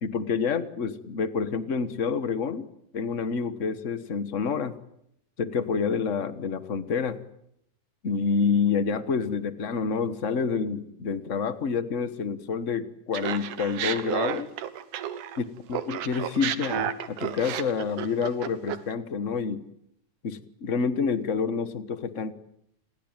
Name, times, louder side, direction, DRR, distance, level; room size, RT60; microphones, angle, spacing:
voice 1, 0.0-2.7 2.9-4.7 5.4-7.2 8.0-14.5 15.4-19.6 20.2-22.3, left 5 dB, 65° left, 13 dB, 0.7 m, -28 dB
Laughter, 13.1-15.4 15.7-18.9, right 10 dB, 85° right, 2.8 m, -32 dB
29.5 x 21.5 x 9.0 m, 0.77 s
omnidirectional pair, 3.5 m